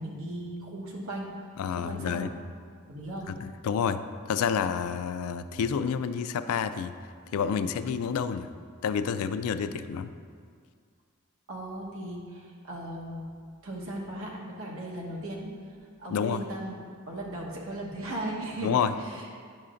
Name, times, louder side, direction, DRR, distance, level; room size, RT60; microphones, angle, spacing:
voice 1, 0.0-2.2 2.9-3.4 11.5-13.3 13.6-15.5 16.0-16.8 17.1-19.2, right 1 dB, 65° right, -3 dB, 1.1 m, -37 dB
voice 2, 1.6-2.3 3.3-6.9 7.3-8.5 8.8-10.1 16.1-16.4 18.6-18.9, left 7 dB, 75° left, 11 dB, 0.3 m, -29 dB
9.6 x 5.6 x 2.5 m, 2.1 s
head